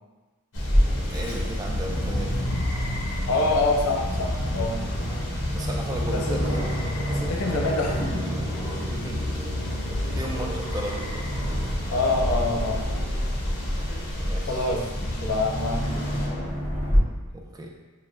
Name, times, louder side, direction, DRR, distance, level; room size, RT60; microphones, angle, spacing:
sound 1, 0.5-16.3, left 1 dB, 60° left, 0.9 m, -32 dB
Aircraft, 0.5-17.0, equal, 25° left, 1.2 m, -29 dB
voice 1, 0.9-2.5 5.0-5.3 5.5-6.6 8.9-9.5 9.9-11.6 13.7-14.6 17.3-17.7, right 1 dB, 20° right, 0 dB, 0.4 m, -36 dB
voice 2, 3.3-4.8 6.1-6.4 7.1-8.3 9.9-10.1 11.9-13.1 14.5-16.5, left 2 dB, 85° left, 0 dB, 0.7 m, -27 dB
6.7 x 2.3 x 2.4 m, 1.3 s
head